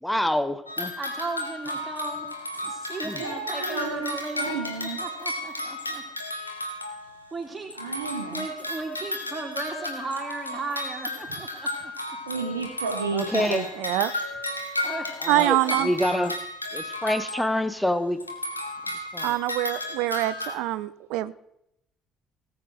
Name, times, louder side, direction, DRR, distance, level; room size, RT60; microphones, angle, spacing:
voice 1, 0.0-0.9 3.0-3.2 13.1-13.7 15.2-16.4 16.7-18.2 19.1-19.4, left 1 dB, 5° left, 0.9 m, -26 dB
sound 1, 0.7-7.4 7.7-17.9 18.2-20.6, left 1 dB, 85° left, 0.8 m, -34 dB
voice 2, 1.0-2.3 2.7-6.0 6.4-6.5 7.3-7.7 8.3-11.9 14.8-15.1 15.6-15.8, right 3 dB, 20° right, 3.5 m, -36 dB
voice 3, 3.2-5.0 7.7-8.4 12.3-13.7, right 4 dB, 80° right, 0.9 m, -32 dB
voice 4, 13.8-14.2 15.3-15.9 19.2-21.3, right 16 dB, 60° right, 0.4 m, -25 dB
18.0 x 7.8 x 3.8 m
figure-of-eight pair, 50°, 0 cm